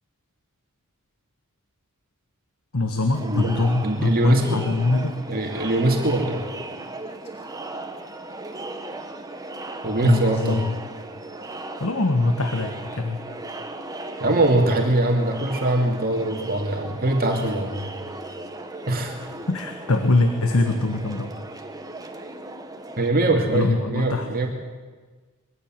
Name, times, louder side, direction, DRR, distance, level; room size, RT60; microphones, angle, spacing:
voice 1, 2.7-5.1 10.0-10.7 11.8-13.2 19.5-21.3 23.5-24.3, left 2 dB, 70° left, 6 dB, 1.5 m, -23 dB
Crowd, 3.1-23.1, right 2 dB, 15° right, 1.4 m, -36 dB
voice 2, 3.8-4.6 5.3-6.5 9.8-10.6 14.2-17.9 18.9-19.1 23.0-24.5, right 1 dB, 45° right, 2 dB, 2.5 m, -22 dB
22.5 x 15.5 x 9.1 m, 1.4 s
head